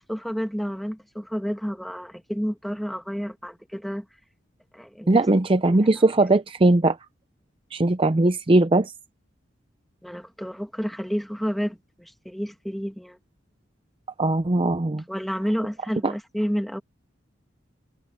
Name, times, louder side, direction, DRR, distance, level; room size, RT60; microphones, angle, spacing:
voice 1, 0.0-4.1 4.7-5.2 5.7-5.8 10.0-13.2 15.1-16.8, equal, ahead, 2.0 m, -30 dB
voice 2, 5.1-7.0 7.7-8.9 14.2-15.0 16.0-16.1, right 2 dB, 30° right, 0.6 m, -19 dB
head